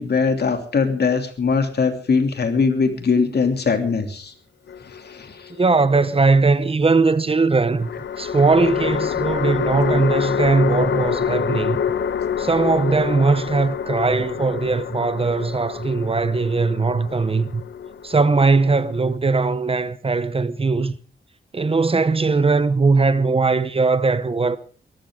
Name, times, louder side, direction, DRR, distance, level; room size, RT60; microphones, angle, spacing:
voice 1, 0.0-4.3 4.8-5.5 9.9-10.0, left 5 dB, 60° left, 3.0 m, -21 dB
sound 1, 4.7-5.6 7.8-19.2, left 7 dB, 80° left, 0.9 m, -26 dB
voice 2, 5.6-7.9 8.2-11.8 12.4-17.6 18.0-20.9 21.5-24.6, right 4 dB, 30° right, 0.9 m, -19 dB
22.5 x 14.5 x 3.8 m
wide cardioid pair, 130°, 19 cm